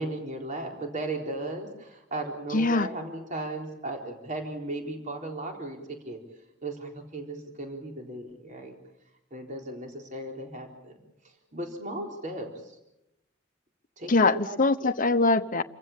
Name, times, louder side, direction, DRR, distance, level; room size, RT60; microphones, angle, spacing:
voice 1, 0.0-6.2 6.6-8.8 9.3-11.0 11.5-12.7 14.0-14.1 14.4-14.9, right 2 dB, 40° right, 4.0 m, -36 dB
voice 2, 2.5-2.9 14.1-15.6, left 3 dB, 45° left, 1.0 m, -23 dB
28.5 x 15.5 x 8.5 m
head